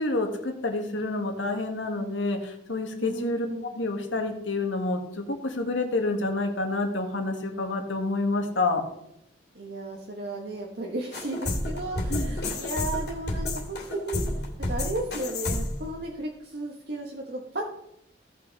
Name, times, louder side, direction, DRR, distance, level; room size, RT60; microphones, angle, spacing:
voice 1, 0.0-3.5 3.7-8.8 12.1-12.3, left 2 dB, 90° left, 4 dB, 1.9 m, -28 dB
voice 2, 3.0-3.7 9.5-14.2 14.7-17.7, right 1 dB, 60° right, 0 dB, 1.3 m, -34 dB
sound 1, 11.1-15.9, left 1 dB, 60° left, 2.7 m, -30 dB
16.5 x 5.8 x 4.0 m, 0.79 s
head